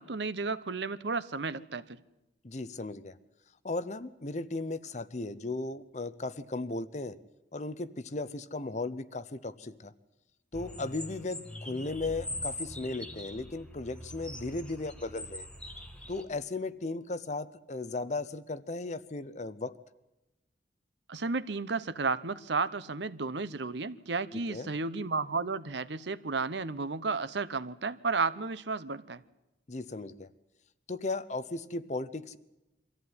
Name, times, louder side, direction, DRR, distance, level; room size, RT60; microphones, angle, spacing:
voice 1, 0.0-2.0 21.1-29.2, right 4 dB, 70° right, 0.9 m, -33 dB
voice 2, 2.4-3.1 3.6-7.1 7.5-9.9 10.5-15.5 16.1-19.7 24.5-24.7 29.7-30.3 30.9-32.4, left 2 dB, 40° left, 0.7 m, -36 dB
sound 1, 10.5-16.2, left 1 dB, 5° left, 1.6 m, -42 dB
23.5 x 14.5 x 9.5 m
head